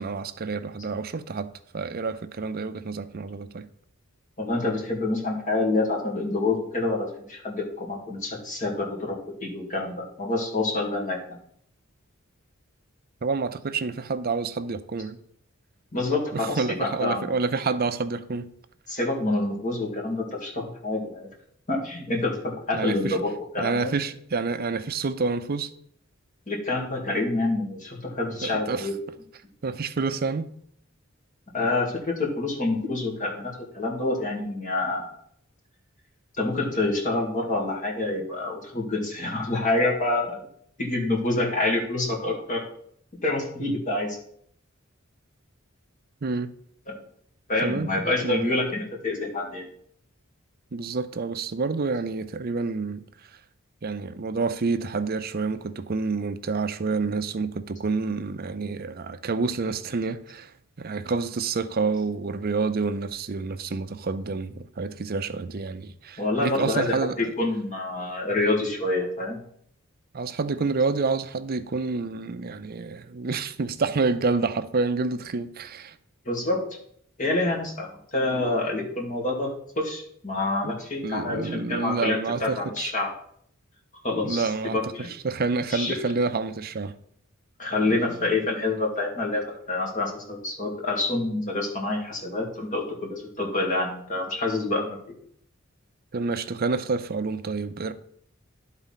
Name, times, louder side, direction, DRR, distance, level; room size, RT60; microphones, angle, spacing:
voice 1, 0.0-3.6 13.2-15.2 16.3-18.5 22.7-23.2 23.6-25.7 28.4-28.9 29.6-30.5 46.2-46.5 47.6-47.9 48.2-48.5 50.7-53.0 53.8-60.5 60.8-67.2 70.1-76.0 80.6-80.7 81.0-82.9 84.2-86.9 96.1-97.9, right 4 dB, 45° right, 0.5 m, -28 dB
voice 2, 4.4-11.2 15.9-17.4 18.9-21.3 21.7-23.9 26.5-29.0 31.5-35.1 36.4-40.4 40.8-42.7 43.2-44.2 46.9-47.0 47.5-49.7 66.2-69.4 76.3-76.6 77.2-79.5 79.8-83.1 84.0-85.1 85.7-86.0 87.6-89.4 89.7-95.0, left 2 dB, 40° left, 2.2 m, -27 dB
11.0 x 4.1 x 5.7 m
head